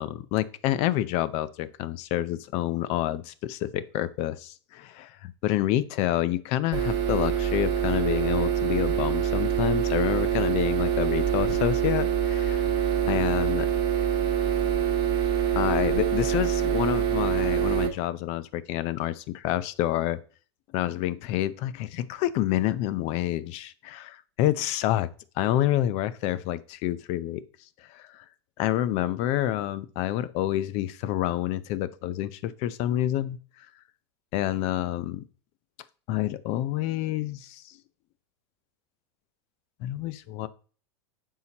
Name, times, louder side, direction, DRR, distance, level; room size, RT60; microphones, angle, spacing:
voice 1, 0.0-12.7 13.1-13.7 15.6-20.2 20.7-25.1 25.4-27.4 27.9-28.2 28.6-33.4 34.3-35.2 36.1-37.6 39.8-40.5, left 13 dB, 50° left, 16 dB, 0.6 m, -28 dB
sound 1, 6.7-17.9, right 9 dB, 30° right, 1.6 m, -25 dB
9.5 x 5.6 x 2.9 m, 0.39 s
supercardioid pair, 120°, 14 cm